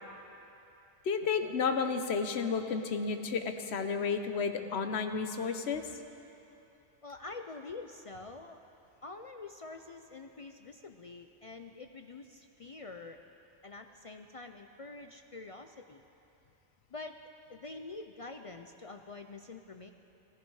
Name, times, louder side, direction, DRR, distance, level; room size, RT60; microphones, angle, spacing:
voice 1, 1.0-5.8, left 5 dB, 70° left, 7 dB, 1.1 m, -32 dB
voice 2, 7.0-8.7 9.0-13.2 13.6-16.0 16.9-17.2 17.5-19.9, left 3 dB, 50° left, 5 dB, 0.4 m, -46 dB
17.0 x 14.5 x 4.8 m, 2.9 s
omnidirectional pair, 1.2 m